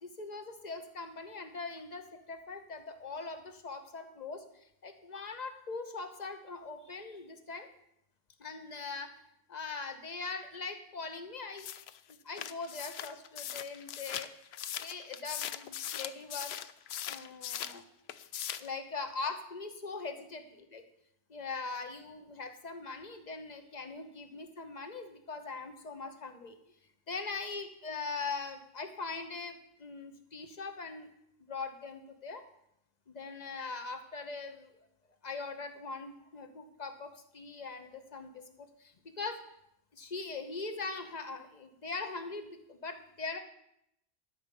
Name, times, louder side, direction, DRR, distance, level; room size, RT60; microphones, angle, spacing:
voice 1, 0.0-7.7 8.4-9.1 9.5-11.7 12.2-14.3 14.8-16.5 17.1-17.8 18.6-20.4 20.7-20.8 21.3-26.6 27.1-31.1 31.5-32.4 33.1-34.7 35.2-39.4 39.9-43.4, left 4 dB, 35° left, 7 dB, 1.1 m, -41 dB
sound 1, 11.6-17.8 18.1-18.7, left 10 dB, 65° left, 0.7 m, -40 dB
12.5 x 5.1 x 6.9 m, 0.77 s
omnidirectional pair, 1.3 m